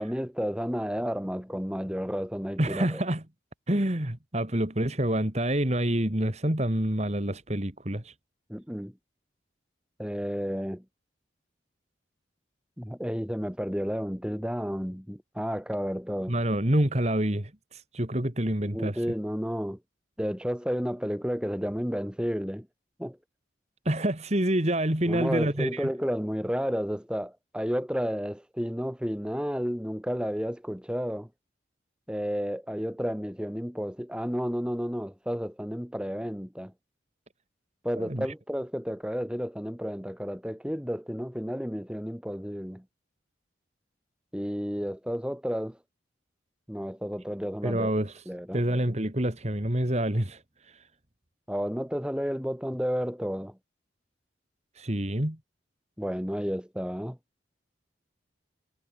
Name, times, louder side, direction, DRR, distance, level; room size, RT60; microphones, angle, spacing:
voice 1, 0.0-3.0 8.5-8.9 10.0-10.8 12.8-16.4 18.6-19.8 20.2-22.7 23.0-23.2 25.0-31.3 32.1-36.7 37.8-42.8 44.3-45.8 46.7-47.9 48.2-48.6 51.5-53.6 56.0-57.2, equal, 5° right, 3.3 m, -31 dB
voice 2, 2.6-3.2 3.7-8.1 16.3-19.0 23.9-25.9 38.0-38.3 47.6-48.2 48.5-50.4 54.8-55.4, right 1 dB, 35° right, 2.2 m, -27 dB
head